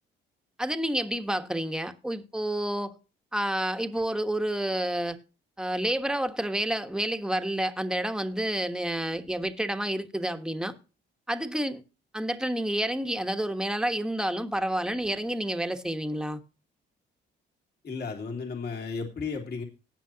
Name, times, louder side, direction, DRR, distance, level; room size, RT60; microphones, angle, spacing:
voice 1, 0.6-2.9 3.3-5.2 5.6-10.7 11.3-11.8 12.1-16.4, right 1 dB, 5° right, 1.3 m, -29 dB
voice 2, 17.8-19.6, left 4 dB, 55° left, 2.9 m, -34 dB
18.0 x 7.4 x 2.8 m
cardioid pair, 90°, 20 cm